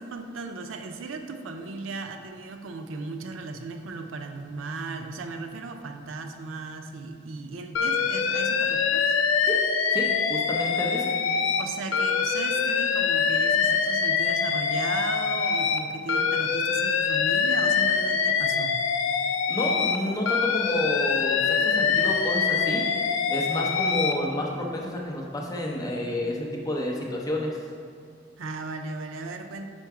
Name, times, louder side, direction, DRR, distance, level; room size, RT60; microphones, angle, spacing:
voice 1, 0.0-9.1 11.6-18.8 28.4-29.7, right 3 dB, 85° right, 6 dB, 0.4 m, -36 dB
Alarm, 7.7-11.6 11.9-15.8 16.1-20.0 20.2-24.1, left 6 dB, 85° left, 0.4 m, -24 dB
voice 2, 9.9-11.2 19.5-22.9 23.3-27.6, left 1 dB, 20° left, -1 dB, 0.7 m, -30 dB
4.5 x 4.5 x 4.7 m, 2.3 s
head